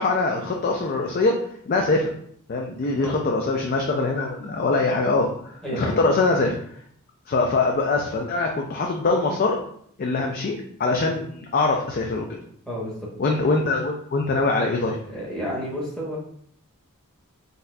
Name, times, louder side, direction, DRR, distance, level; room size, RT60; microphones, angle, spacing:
voice 1, 0.0-1.3 1.7-2.1 2.5-6.6 7.3-9.6 10.0-12.2 13.2-15.0, left 3 dB, 45° left, 1 dB, 0.4 m, -23 dB
voice 2, 5.6-6.0 12.7-13.0 15.1-16.2, equal, 5° left, -7 dB, 0.9 m, -30 dB
4.0 x 2.6 x 2.2 m, 0.64 s
head